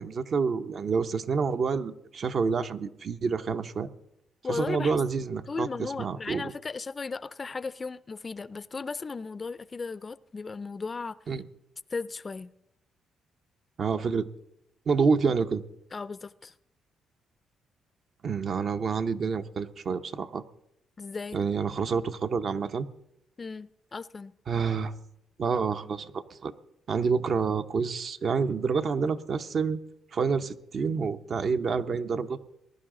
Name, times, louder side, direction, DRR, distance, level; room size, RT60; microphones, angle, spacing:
voice 1, 0.0-3.9 4.5-6.4 11.3-11.4 13.8-14.3 14.9-15.6 18.2-20.4 21.3-22.9 24.5-24.9 25.4-26.5 26.9-29.8 30.1-32.4, right 5 dB, 50° right, 0.7 m, -28 dB
voice 2, 4.4-5.0 5.5-11.2 11.9-12.5 15.9-16.5 21.0-21.4 23.4-24.3, left 4 dB, 30° left, 0.4 m, -36 dB
19.5 x 11.5 x 3.7 m
cardioid pair, 90°, 0 cm